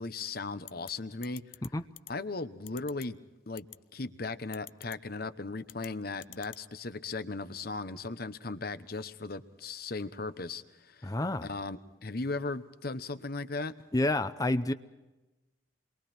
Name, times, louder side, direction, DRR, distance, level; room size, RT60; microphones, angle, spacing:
voice 1, 0.0-1.4 2.1-3.2 3.5-3.7 3.9-11.1 11.4-13.7, left 3 dB, 55° left, 12 dB, 1.0 m, -37 dB
sound 1, 0.7-0.9 1.2-1.7 2.0-2.1 2.7-3.0 3.6-3.8 4.5-5.0 5.6-5.9 6.2-6.6, left 15 dB, 80° left, 0.6 m, -46 dB
voice 2, 11.0-11.5 13.9-14.7, left 2 dB, 20° left, 11 dB, 0.6 m, -28 dB
29.0 x 23.0 x 4.4 m, 1.1 s
head